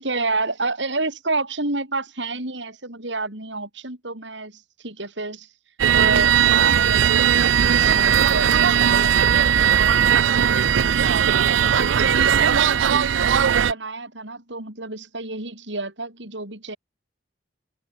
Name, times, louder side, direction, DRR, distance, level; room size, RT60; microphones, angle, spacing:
voice 1, 0.0-5.5 5.9-11.3 11.7-16.8, right 3 dB, 70° right, 7.0 m, -30 dB
sound 1, 5.8-13.7, right 8 dB, 85° right, 0.5 m, -18 dB
head